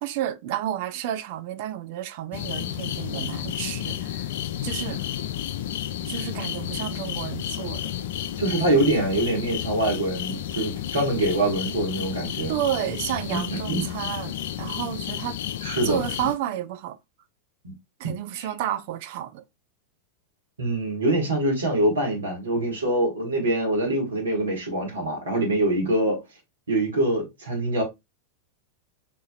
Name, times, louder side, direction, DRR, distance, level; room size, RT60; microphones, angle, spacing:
voice 1, 0.0-4.3 4.6-5.1 6.1-7.9 12.5-15.4 15.8-17.0 18.0-19.4, right 12 dB, 50° right, 0.3 m, -31 dB
sound 1, 2.3-16.4, left 11 dB, 55° left, 0.3 m, -32 dB
voice 2, 8.4-12.5 13.3-13.9 15.6-16.0 17.6-17.7 18.0-18.5 20.6-26.2 26.7-27.8, right 1 dB, 70° right, 1.8 m, -24 dB
4.0 x 3.7 x 2.3 m
figure-of-eight pair, 90°, 0 cm